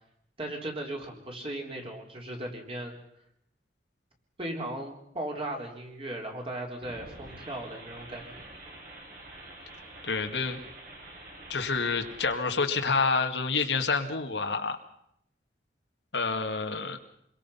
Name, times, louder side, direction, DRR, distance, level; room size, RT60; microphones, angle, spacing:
voice 1, 0.4-3.0 4.4-8.4, right 1 dB, 30° right, 1 dB, 3.8 m, -37 dB
sound 1, 6.8-12.4, right 1 dB, 55° right, 7.5 m, -47 dB
voice 2, 10.0-10.6 11.5-14.8 16.1-17.0, left 4 dB, 90° left, 5 dB, 2.0 m, -28 dB
27.0 x 22.0 x 5.7 m, 0.76 s
head